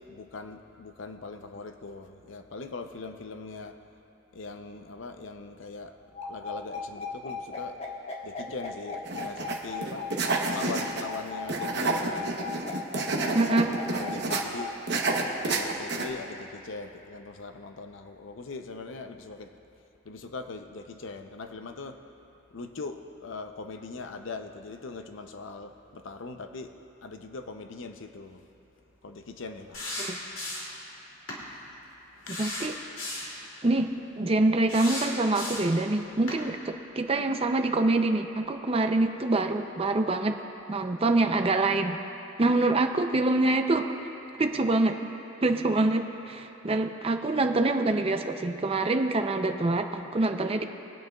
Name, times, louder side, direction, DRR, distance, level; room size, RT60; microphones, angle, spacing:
voice 1, 0.0-3.8 4.3-5.9 6.3-7.8 8.2-10.1 10.5-12.5 13.5-14.8 15.4-19.5 20.0-22.0 22.5-26.7 27.0-28.5 29.0-29.8 32.1-32.3 33.1-33.3, left 3 dB, 70° left, 6 dB, 0.6 m, -41 dB
sound 1, 6.1-14.7, left 4 dB, 30° left, 1.3 m, -37 dB
sound 2, 9.1-9.6 9.8-11.2 11.5-14.4 14.9-16.1, right 3 dB, 55° right, 1.0 m, -29 dB
voice 2, 13.3-13.8 30.0-30.2 32.4-32.7 33.6-40.4 40.7-42.0 42.4-44.0 44.4-45.1 45.4-50.6, right 2 dB, 30° right, 6 dB, 0.5 m, -25 dB
sound 3, 29.7-30.8 31.3-31.4 32.2-33.4 34.7-35.8 36.3-36.4, left 1 dB, 90° left, 2.7 m, -35 dB
23.0 x 9.2 x 2.4 m, 2.9 s
head